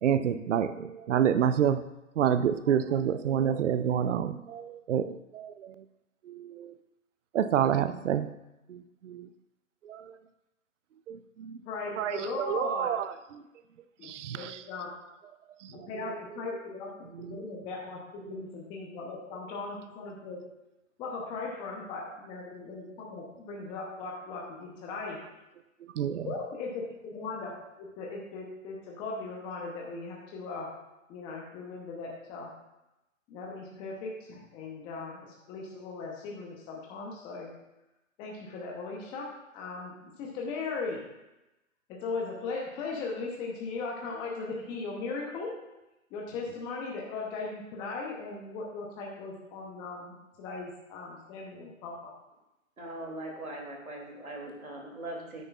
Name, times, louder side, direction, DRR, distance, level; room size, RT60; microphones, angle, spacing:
voice 1, 0.0-1.8 2.2-5.8 6.2-6.7 7.3-8.3 8.7-9.3 9.8-10.1 11.1-11.6 12.0-13.4 14.0-14.6 15.6-16.2 16.5-16.6 17.1-17.4 18.2-18.3 25.8-26.3, right 9 dB, 60° right, 12 dB, 0.6 m, -29 dB
voice 2, 11.7-12.9 14.0-14.9 15.7-16.9 17.3-20.4 21.0-25.2 26.2-27.5 27.8-30.7 31.1-32.5 33.3-35.2 35.5-37.5 38.2-39.3 39.5-41.0 41.9-45.5 46.1-52.1, left 3 dB, 10° left, -2 dB, 0.7 m, -38 dB
voice 3, 52.8-55.4, right 1 dB, 90° right, 0 dB, 2.7 m, -40 dB
9.7 x 9.2 x 2.4 m, 0.95 s
hypercardioid pair, 135°, 41 cm